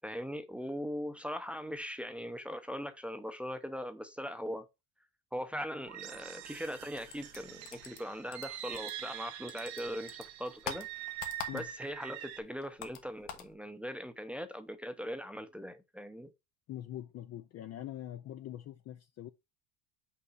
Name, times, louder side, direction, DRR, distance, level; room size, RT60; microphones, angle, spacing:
voice 1, 0.0-4.7 5.3-10.9 11.5-16.3, equal, 5° right, 0.6 m, -40 dB
sound 1, 5.8-12.4, right 12 dB, 90° right, 1.3 m, -44 dB
sound 2, 7.1-9.2 9.5-12.0 12.2-13.5, left 8 dB, 75° left, 1.6 m, -44 dB
voice 2, 16.7-19.3, left 12 dB, 35° left, 0.4 m, -43 dB
5.8 x 4.6 x 4.0 m
supercardioid pair, 120°, 48 cm